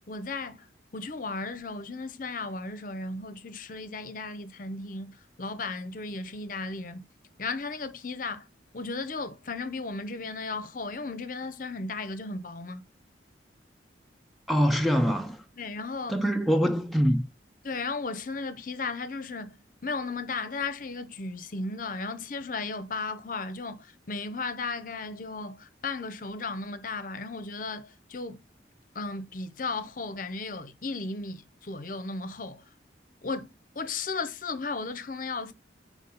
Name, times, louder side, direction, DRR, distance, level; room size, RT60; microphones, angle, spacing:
voice 1, 0.1-0.7 0.9-7.0 7.4-8.4 8.7-12.8 15.6-16.2 17.6-28.4 28.9-32.6 33.2-33.5 33.8-35.5, left 3 dB, 45° left, 0.7 m, -35 dB
voice 2, 14.5-15.4 16.1-17.3, equal, ahead, 0.4 m, -24 dB
4.7 x 4.1 x 5.4 m
head